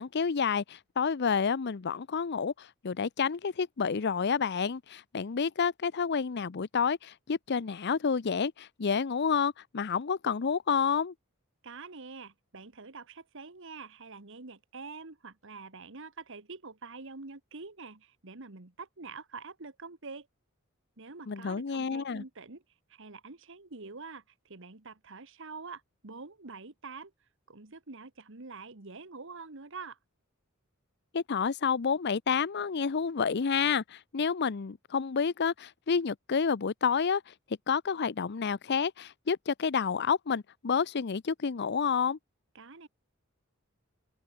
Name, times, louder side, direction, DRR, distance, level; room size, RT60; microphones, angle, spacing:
voice 1, 0.0-11.1 21.3-22.2 31.1-37.3 37.7-42.2, left 6 dB, 55° left, 0.6 m, -29 dB
voice 2, 11.6-20.3 21.0-22.6 22.9-27.1 27.5-30.0 42.5-42.9, right 4 dB, 65° right, 1.7 m, -46 dB
open air
head